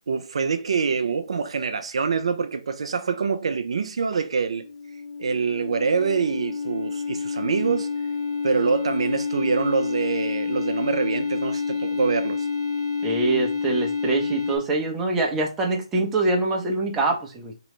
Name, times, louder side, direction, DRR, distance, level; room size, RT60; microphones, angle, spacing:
voice 1, 0.1-4.6 5.2-7.9 8.4-12.5, right 5 dB, 65° right, 0.4 m, -25 dB
sound 1, 4.3-14.6, left 4 dB, 45° left, 0.8 m, -28 dB
voice 2, 13.0-17.5, right 2 dB, 10° right, 0.7 m, -24 dB
3.0 x 2.9 x 3.1 m
hypercardioid pair, 150°, 3 cm